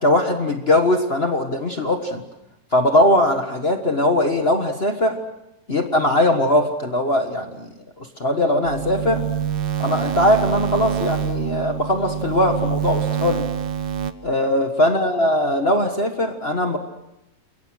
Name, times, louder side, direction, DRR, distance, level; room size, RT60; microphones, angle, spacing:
voice 1, 0.0-2.2 2.7-5.2 5.7-7.7 8.0-9.2 9.8-13.5 14.2-16.8, left 1 dB, 50° left, 5 dB, 0.7 m, -20 dB
sound 1, 8.6-14.1, right 8 dB, 80° right, 1.0 m, -25 dB
29.0 x 22.5 x 6.3 m, 0.88 s
omnidirectional pair, 3.7 m